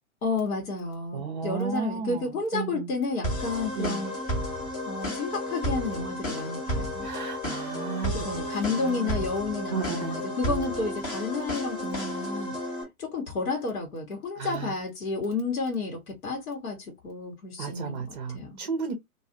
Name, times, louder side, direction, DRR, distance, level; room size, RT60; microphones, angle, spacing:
voice 1, 0.2-4.2 4.5-4.6 4.8-7.1 8.2-12.6 13.0-18.6, left 3 dB, 65° left, 1.4 m, -31 dB
voice 2, 1.1-2.3 2.5-2.9 3.8-4.0 7.0-9.1 9.7-10.2 14.4-14.7 17.6-18.9, right 6 dB, 35° right, 0.6 m, -34 dB
sound 1, 3.2-12.8, equal, 20° left, 1.1 m, -32 dB
2.6 x 2.4 x 2.7 m
figure-of-eight pair, 125°, 43 cm